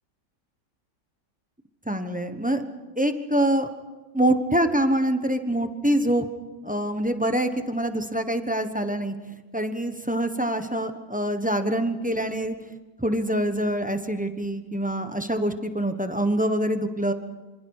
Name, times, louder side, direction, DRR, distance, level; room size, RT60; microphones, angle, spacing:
voice 1, 1.9-2.6 3.0-3.7 4.1-6.2 6.6-9.1 9.5-12.5 13.0-17.1, right 1 dB, 5° right, 8 dB, 0.8 m, -25 dB
26.0 x 26.0 x 4.8 m, 1.2 s
omnidirectional pair, 1.9 m